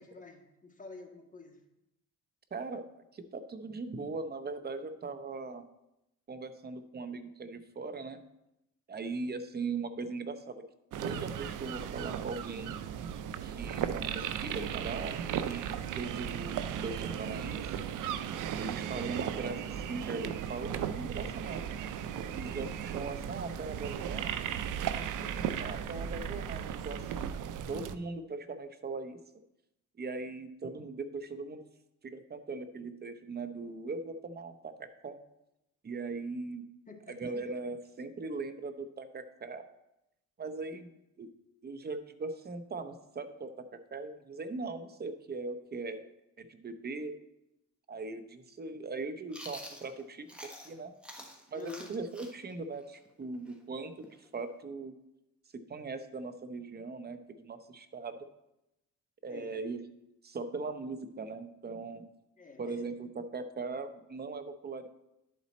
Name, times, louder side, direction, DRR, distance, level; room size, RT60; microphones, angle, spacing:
voice 1, 0.0-1.6 36.9-37.3 51.5-51.9 59.3-59.6 62.4-62.8, left 3 dB, 25° left, 2 dB, 1.5 m, -49 dB
voice 2, 2.5-2.9 3.1-5.6 6.3-8.2 8.9-10.6 11.0-12.7 13.4-15.2 15.4-17.8 18.6-21.7 22.1-24.4 25.2-27.4 27.7-29.2 30.0-31.6 32.0-35.2 35.8-36.6 37.1-39.7 40.4-40.9 41.2-41.3 41.6-46.0 46.4-47.2 47.9-50.9 51.5-54.9 55.5-58.2 59.2-59.8 60.2-62.0 62.6-64.9, right 3 dB, 30° right, 10 dB, 0.7 m, -40 dB
sound 1, 10.9-27.9, right 9 dB, 65° right, 0.5 m, -36 dB
Chewing mastication, 49.3-50.7 51.0-54.6, equal, 5° right, 1.2 m, -48 dB
11.0 x 4.2 x 4.1 m, 0.88 s
cardioid pair, 90°, 33 cm